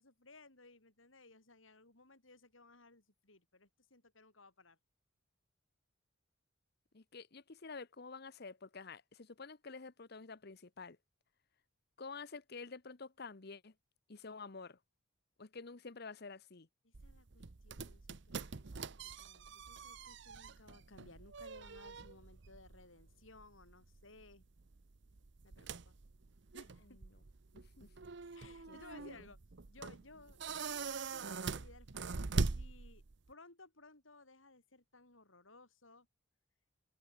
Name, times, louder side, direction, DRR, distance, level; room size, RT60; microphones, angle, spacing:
voice 1, 0.0-4.8 16.8-24.5 25.4-25.9 26.5-27.0 28.3-29.4 29.7-33.0 33.3-36.1, left 2 dB, 85° left, 7.0 m, -60 dB
voice 2, 6.9-11.0 12.0-13.7 14.1-14.8 15.4-16.7 26.8-27.2 27.5-27.9 28.7-29.2, left 4 dB, 55° left, 1.0 m, -49 dB
sound 1, 16.9-33.3, right 4 dB, 65° right, 0.8 m, -43 dB
open air
head